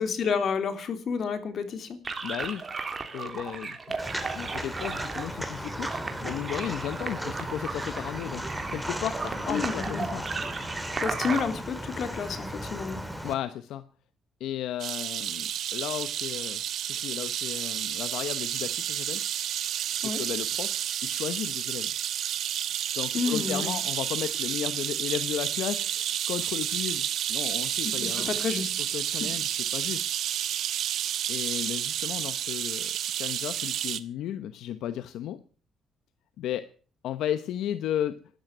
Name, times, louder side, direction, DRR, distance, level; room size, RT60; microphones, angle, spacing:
voice 1, 0.0-2.0 9.5-10.1 11.0-13.0 20.0-20.2 23.1-23.7 27.8-28.7 29.2-29.3, left 6 dB, 60° left, 8 dB, 3.3 m, -30 dB
sound 1, 2.0-11.4, right 4 dB, 35° right, 3.1 m, -35 dB
voice 2, 2.2-2.6 3.1-10.3 13.2-13.8 14.4-19.2 19.9-21.9 22.9-28.4 28.8-30.1 31.3-35.4 36.4-36.7 37.0-38.2, left 11 dB, 85° left, 12 dB, 0.9 m, -34 dB
Walk footsteps, 4.0-13.3, equal, ahead, 2.8 m, -36 dB
sound 2, 14.8-34.0, right 11 dB, 75° right, 1.1 m, -30 dB
13.0 x 12.0 x 9.1 m, 0.43 s
cardioid pair, 90°, 0 cm